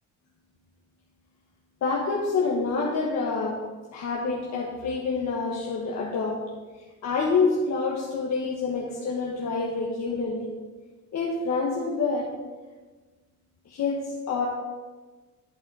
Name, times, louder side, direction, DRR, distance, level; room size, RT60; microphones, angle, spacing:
voice 1, 1.8-6.5 7.0-10.5 11.1-12.4 13.6-14.5, left 4 dB, 65° left, -3 dB, 1.4 m, -27 dB
11.5 x 4.3 x 4.8 m, 1.3 s
cardioid pair, 90°, 30 cm